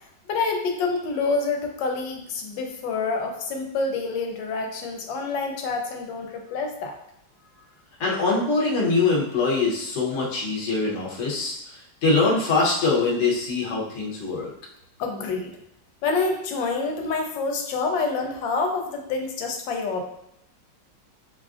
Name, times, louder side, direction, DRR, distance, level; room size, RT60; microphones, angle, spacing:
voice 1, 0.3-6.9 15.0-15.5 16.0-20.0, left 4 dB, 80° left, 3 dB, 1.3 m, -27 dB
voice 2, 8.0-14.5, left 3 dB, 50° left, -4 dB, 0.9 m, -23 dB
4.5 x 2.3 x 2.4 m, 0.78 s
omnidirectional pair, 2.0 m